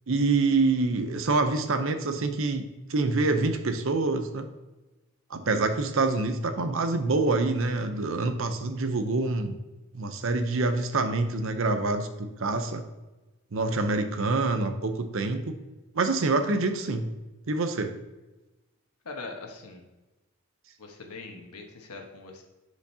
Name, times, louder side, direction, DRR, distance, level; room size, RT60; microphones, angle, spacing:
voice 1, 0.1-4.5 5.3-9.6 9.9-12.8 13.5-15.5 15.9-17.1 17.5-17.9, right 3 dB, 60° right, 8 dB, 0.7 m, -26 dB
voice 2, 19.0-19.8 20.8-22.4, left 3 dB, 85° left, 2 dB, 1.2 m, -41 dB
10.5 x 5.1 x 2.8 m, 1.1 s
head